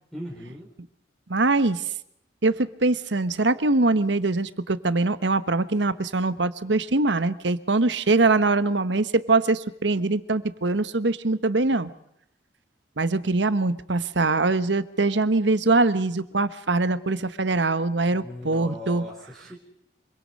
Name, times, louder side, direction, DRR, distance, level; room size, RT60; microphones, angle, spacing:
voice 1, 0.1-0.7 18.1-19.6, left 1 dB, ahead, -1 dB, 3.6 m, -39 dB
voice 2, 1.3-1.8 2.4-11.9 13.0-19.0, right 3 dB, 85° right, 13 dB, 1.2 m, -23 dB
26.0 x 24.0 x 5.4 m, 0.75 s
head